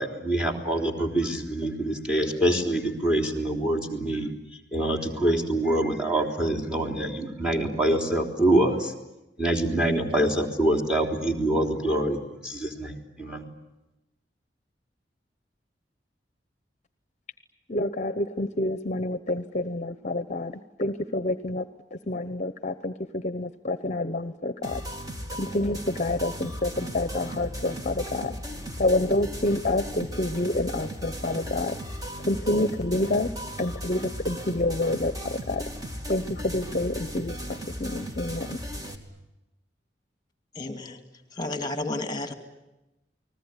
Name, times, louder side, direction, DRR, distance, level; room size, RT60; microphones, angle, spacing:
voice 1, 0.0-4.3 4.7-8.9 9.4-13.4, right 1 dB, 5° right, 3 dB, 3.6 m, -25 dB
voice 2, 17.7-21.7 21.9-24.8 25.3-28.4 28.8-31.8 32.3-33.3 33.6-35.6 36.1-38.6, left 2 dB, 45° left, 11 dB, 0.9 m, -28 dB
sound 1, 24.6-38.9, equal, 20° right, 2.8 m, -36 dB
voice 3, 40.6-41.0 41.4-42.3, left 2 dB, 25° left, 8 dB, 2.6 m, -31 dB
29.5 x 20.5 x 9.9 m, 0.95 s
head